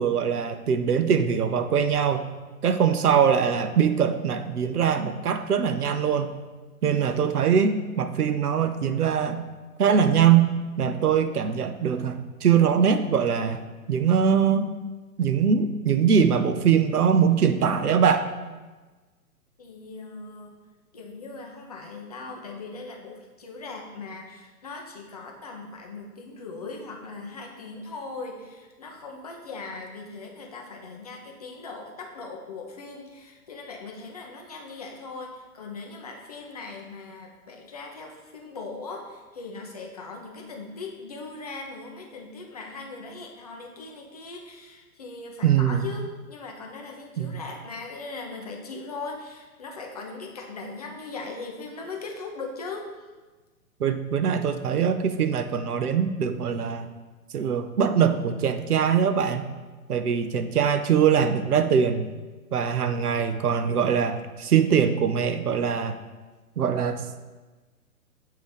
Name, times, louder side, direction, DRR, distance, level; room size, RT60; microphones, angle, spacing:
voice 1, 0.0-2.3 2.6-6.3 6.8-9.4 9.8-10.5 10.8-13.6 13.9-14.7 15.2-18.2 45.4-45.8 47.2-47.4 53.8-56.9 57.3-59.5 59.9-62.1 62.5-66.0 66.6-67.0, right 7 dB, 75° right, 10 dB, 0.7 m, -22 dB
voice 2, 19.6-20.6 20.9-52.9, left 3 dB, 25° left, 0 dB, 0.5 m, -39 dB
7.8 x 2.8 x 5.1 m, 1.3 s
figure-of-eight pair, 125°, 45 cm